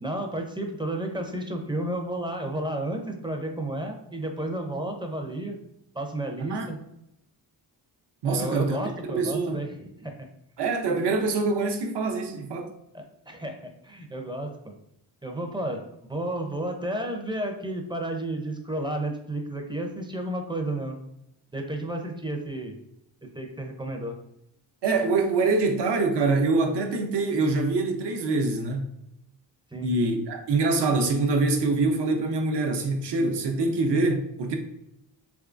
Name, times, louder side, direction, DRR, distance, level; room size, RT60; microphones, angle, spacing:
voice 1, 0.0-5.6 5.9-6.8 8.2-10.1 12.9-14.7 15.2-15.8 16.1-21.0 21.5-22.8 23.3-24.1 29.7-29.9, right 1 dB, 10° right, 0.6 m, -32 dB
voice 2, 8.2-9.6 10.6-12.7 24.8-28.9 29.8-34.6, right 3 dB, 65° right, 0.8 m, -25 dB
3.5 x 3.1 x 2.5 m
cardioid pair, 75°, 44 cm